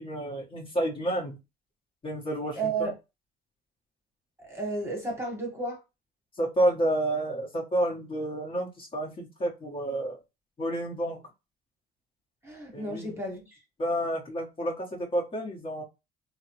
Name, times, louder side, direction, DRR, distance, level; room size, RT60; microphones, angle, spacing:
voice 1, 0.0-1.4 2.0-2.9 6.4-10.2 10.6-11.2 12.7-13.1 13.8-15.8, right 1 dB, 30° left, 1.1 m, -30 dB
voice 2, 2.5-2.9 4.4-5.8 12.4-13.6, right 3 dB, 15° right, 1.2 m, -33 dB
3.2 x 2.1 x 2.9 m
cardioid pair, 110°, 17 cm